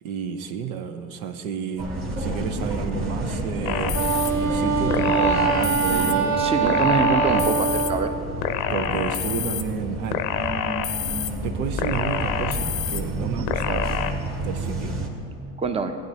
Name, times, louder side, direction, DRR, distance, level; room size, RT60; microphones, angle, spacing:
voice 1, 0.0-4.0 4.4-6.4 8.7-10.2 11.4-13.9 14.4-15.0, right 7 dB, 75° right, 9 dB, 0.7 m, -31 dB
sound 1, 1.8-15.1, right 1 dB, 30° right, 1.8 m, -30 dB
sound 2, 3.7-4.3 4.9-6.1 6.7-7.9 8.4-9.6 10.1-11.3 11.8-13.0 13.5-14.1, left 9 dB, 75° left, 0.7 m, -27 dB
Wind instrument woodwind instrument, 3.9-8.2, right 5 dB, 50° right, 0.7 m, -23 dB
voice 2, 6.4-8.1 13.4-13.5 15.6-16.0, right 4 dB, 15° right, 8 dB, 0.6 m, -24 dB
15.0 x 9.1 x 2.8 m, 2.8 s
hypercardioid pair, 75°, 42 cm